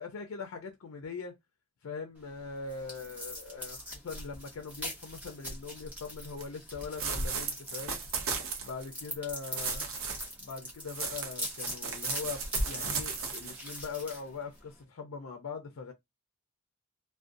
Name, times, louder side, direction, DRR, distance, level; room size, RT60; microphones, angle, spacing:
voice 1, 0.0-1.4 1.8-8.0 8.6-9.9 10.4-15.9, left 5 dB, 80° left, 0.4 m, -41 dB
sound 1, 2.2-14.8, equal, 5° right, 0.7 m, -43 dB
sound 2, 6.4-6.5 7.0-8.9 9.4-10.3 10.9-13.7, right 4 dB, 80° right, 0.7 m, -35 dB
2.5 x 2.1 x 2.5 m
head